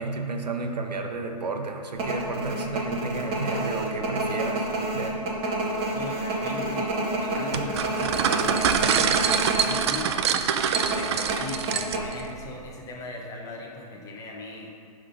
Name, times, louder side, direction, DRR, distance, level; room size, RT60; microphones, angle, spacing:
voice 1, 0.0-4.7 4.9-5.2, right 3 dB, 80° right, 4 dB, 0.9 m, -32 dB
sound 1, 1.9-9.7 10.0-10.1 10.8-12.4 12.7-12.8, right 2 dB, 25° right, 1.6 m, -28 dB
voice 2, 5.9-6.9 7.2-8.7 9.0-10.4 10.9-14.7, left 3 dB, 15° left, -2 dB, 1.2 m, -39 dB
sound 2, 7.5-12.2, right 7 dB, 40° right, 0.5 m, -25 dB
11.0 x 3.8 x 5.3 m, 2.3 s
hypercardioid pair, 130°, 21 cm